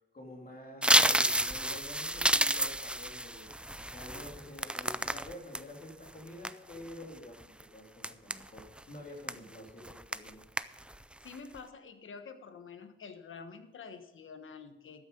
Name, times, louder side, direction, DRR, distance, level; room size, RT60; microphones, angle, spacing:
voice 1, 0.1-10.4, left 1 dB, 45° left, 0 dB, 2.9 m, -48 dB
sound 1, 0.8-5.6 6.1-6.9 7.4-7.6 8.0-8.8 9.3-9.6 9.8-10.3 10.6-11.0 11.3-11.6, right 1 dB, 5° right, 0.4 m, -29 dB
voice 2, 11.2-15.0, left 5 dB, 80° left, 8 dB, 1.3 m, -48 dB
13.5 x 9.4 x 5.3 m, 0.90 s
cardioid pair, 85°, 20 cm